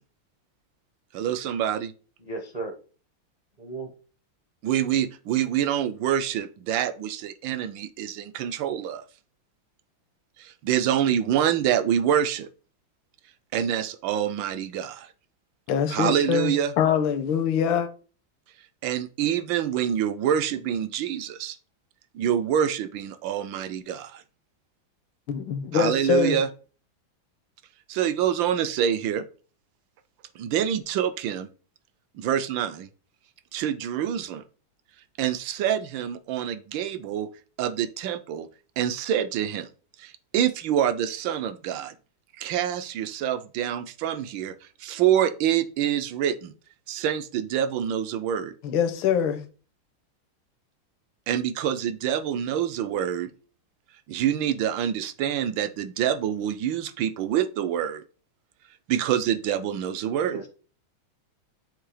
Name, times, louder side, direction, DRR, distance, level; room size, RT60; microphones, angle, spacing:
voice 1, 1.1-1.9 4.6-9.0 10.4-12.5 13.5-15.1 15.9-16.7 18.8-21.6 22.1-24.2 25.7-26.5 27.9-29.2 30.3-31.5 32.1-32.9 33.5-34.4 35.2-37.3 37.6-38.5 38.8-39.7 40.0-41.9 42.4-44.5 44.8-46.5 46.9-48.5 51.3-53.3 54.1-58.0 58.9-60.4, right 9 dB, 75° right, 1.2 m, -26 dB
voice 2, 2.2-2.7 3.6-3.9 60.3-60.5, right 3 dB, 40° right, 0.5 m, -35 dB
voice 3, 15.7-17.9 25.3-26.4 48.6-49.4, left 7 dB, 80° left, 1.5 m, -24 dB
7.4 x 2.7 x 4.9 m
omnidirectional pair, 2.2 m